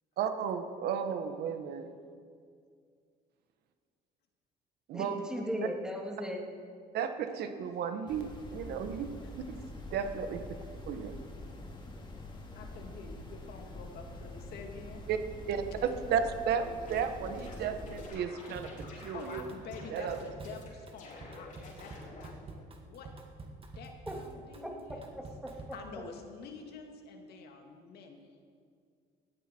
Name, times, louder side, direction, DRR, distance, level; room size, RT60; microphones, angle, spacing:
voice 1, 0.2-1.9 4.9-5.2 6.9-9.1 9.9-10.6 10.9-11.2 15.1-15.2 15.5-19.4 19.9-20.2, right 7 dB, 75° right, 8 dB, 1.3 m, -33 dB
voice 2, 4.9-6.5 24.1-24.7 25.2-25.5 26.0-26.1, equal, 5° right, 0 dB, 2.5 m, -38 dB
sound 1, 8.1-18.1, left 1 dB, 25° left, 2.4 m, -45 dB
voice 3, 12.6-15.0 18.9-23.1 23.8-25.2 25.7-28.3, left 5 dB, 70° left, 3 dB, 2.2 m, -48 dB
sound 2, 16.6-19.4 19.7-20.7 21.0-22.3, left 2 dB, 50° left, 4.6 m, -50 dB
Drum kit / Drum, 18.5-25.9, right 2 dB, 35° right, 1.8 m, -47 dB
18.5 x 15.0 x 4.5 m, 2.2 s
cardioid pair, 110°, 17 cm